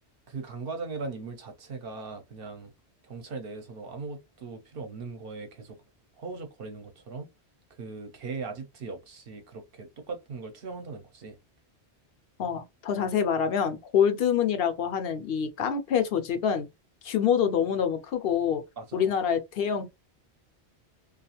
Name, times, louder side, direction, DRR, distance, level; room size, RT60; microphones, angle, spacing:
voice 1, 0.3-2.7 3.1-5.8 6.2-7.3 7.8-11.4 18.8-19.0, right 4 dB, 60° right, 0.8 m, -39 dB
voice 2, 12.4-16.7 17.0-18.6 18.9-19.8, left 8 dB, 65° left, 0.7 m, -26 dB
2.3 x 2.3 x 2.9 m
omnidirectional pair, 1.1 m